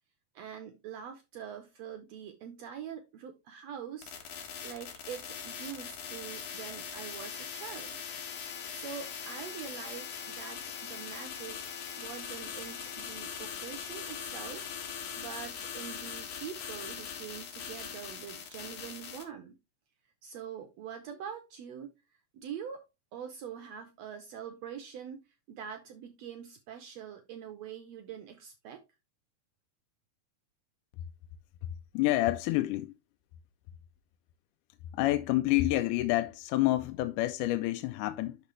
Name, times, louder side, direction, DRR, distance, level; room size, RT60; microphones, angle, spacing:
voice 1, 0.3-8.0 8.4-11.6 11.9-19.5 20.2-21.9 22.3-22.9 23.1-25.2 25.5-28.8, right 8 dB, 85° right, 1.5 m, -44 dB
sound 1, 4.0-19.2, left 7 dB, 65° left, 2.7 m, -41 dB
voice 2, 31.9-33.0 34.9-38.4, left 16 dB, 80° left, 1.9 m, -28 dB
11.5 x 4.0 x 3.1 m
omnidirectional pair, 3.9 m